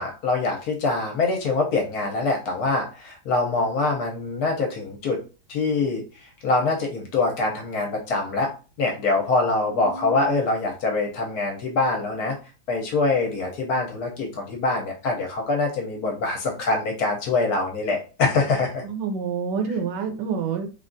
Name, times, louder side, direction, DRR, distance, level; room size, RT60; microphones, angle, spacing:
voice 1, 0.0-5.2 5.5-6.0 6.4-8.5 8.8-12.4 12.7-18.8, left 3 dB, 70° left, 1 dB, 1.0 m, -24 dB
voice 2, 9.7-10.4 18.8-20.7, right 6 dB, 75° right, 5 dB, 1.2 m, -28 dB
3.4 x 2.3 x 2.5 m, 0.35 s
omnidirectional pair, 2.0 m